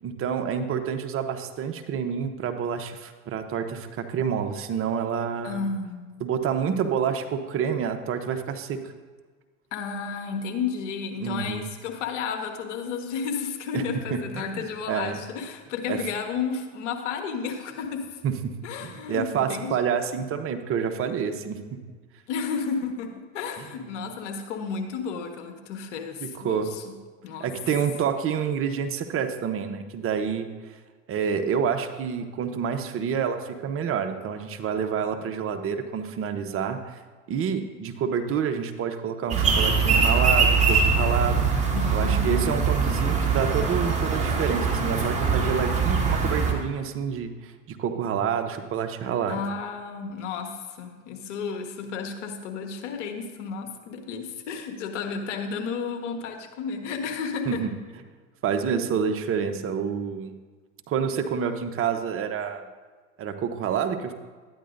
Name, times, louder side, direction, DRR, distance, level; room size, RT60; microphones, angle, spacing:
voice 1, 0.0-5.6 6.2-8.8 11.2-11.7 13.7-13.8 14.1-15.2 15.9-16.0 18.2-18.5 18.8-21.6 23.9-24.0 26.2-26.7 27.4-30.5 31.1-37.0 37.3-41.5 41.9-49.4 57.5-57.7 58.4-60.3 60.9-62.7 63.2-64.1, right 7 dB, 35° right, 7 dB, 0.8 m, -28 dB
voice 2, 5.4-6.2 9.7-18.0 18.6-19.7 22.3-26.9 27.2-27.5 41.7-43.3 49.3-57.6 58.9-59.0, left 5 dB, 75° left, 4 dB, 1.3 m, -32 dB
sound 1, 39.3-46.5, right 5 dB, 20° right, 1.7 m, -22 dB
12.0 x 9.5 x 2.6 m, 1.4 s
hypercardioid pair, 90°, 36 cm